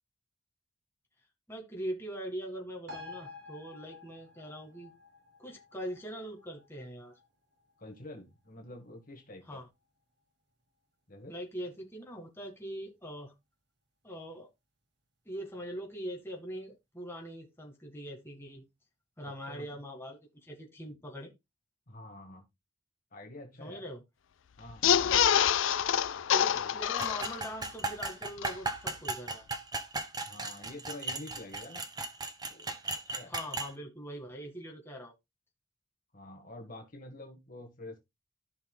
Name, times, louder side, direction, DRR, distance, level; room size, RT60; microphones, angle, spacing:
voice 1, 1.5-4.9 5.4-7.1 9.5-9.7 11.3-13.3 14.0-14.5 15.3-18.6 19.2-21.3 23.6-24.0 26.3-29.5 33.3-35.1, equal, 10° left, 1.9 m, -42 dB
sound 1, 2.9-9.8 10.2-10.3, left 3 dB, 55° right, 1.8 m, -52 dB
voice 2, 7.8-9.6 11.1-11.3 19.2-19.7 21.9-22.5 23.1-23.8 24.6-25.3 26.5-26.7 30.2-31.8 32.5-32.8 33.0-33.3 36.1-38.0, left 1 dB, 45° left, 1.5 m, -47 dB
sound 2, 24.7-27.7 28.1-28.2 28.4-28.5, left 9 dB, 75° left, 0.4 m, -26 dB
sound 3, 27.0-33.7, right 3 dB, 20° right, 1.1 m, -36 dB
14.0 x 5.6 x 2.3 m
head